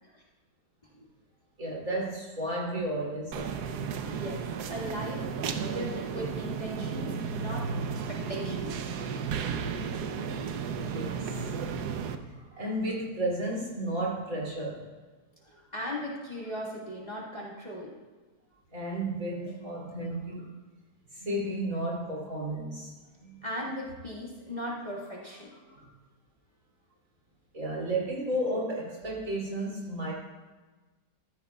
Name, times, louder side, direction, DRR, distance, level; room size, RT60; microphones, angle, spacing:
voice 1, 1.6-3.5 10.9-11.2 11.7-11.8 12.6-14.9 18.7-20.5 21.1-22.9 23.2-23.5 25.8-25.9 27.5-30.1, right 1 dB, 55° right, -4 dB, 3.3 m, -33 dB
sound 1, 3.3-12.2, right 6 dB, 80° right, 1.3 m, -33 dB
voice 2, 4.1-4.4 4.7-5.3 5.5-7.7 8.1-9.1 12.3-12.6 15.4-17.9 23.4-25.9, equal, 25° left, -5 dB, 1.8 m, -38 dB
14.5 x 14.0 x 2.3 m, 1.3 s
omnidirectional pair, 1.7 m